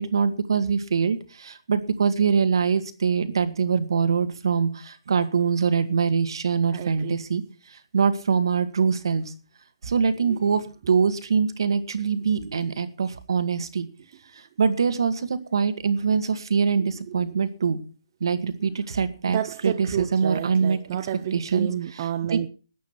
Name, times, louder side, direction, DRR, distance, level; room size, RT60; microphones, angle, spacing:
voice 1, 0.0-7.4 7.9-9.3 9.8-13.9 14.6-17.8 18.2-20.8 21.3-21.7 22.3-22.5, right 6 dB, 65° right, 2.0 m, -23 dB
voice 2, 6.7-7.2 10.2-10.5 16.8-17.4 19.3-22.5, right 11 dB, 35° right, 0.8 m, -31 dB
13.5 x 9.4 x 6.0 m
hypercardioid pair, 155°, 3 cm